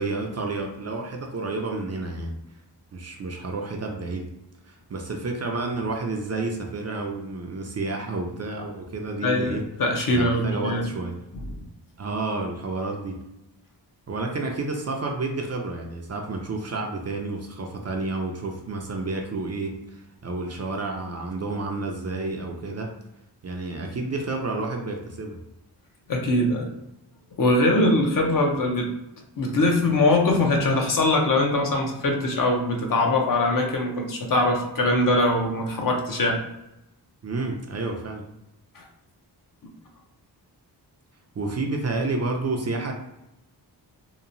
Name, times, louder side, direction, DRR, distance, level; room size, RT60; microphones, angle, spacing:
voice 1, 0.0-2.4 2.9-4.3 4.6-9.6 10.1-11.2 12.0-13.2 14.1-22.9 23.4-25.4 37.2-38.2 41.4-42.9, right 3 dB, 40° right, 2 dB, 0.4 m, -30 dB
voice 2, 9.2-10.9 11.3-11.5 26.1-26.7 27.4-28.9 29.4-36.4 38.8-38.9, left 2 dB, 50° left, 1 dB, 0.6 m, -22 dB
2.9 x 2.0 x 2.5 m, 0.88 s
wide cardioid pair, 100°, 42 cm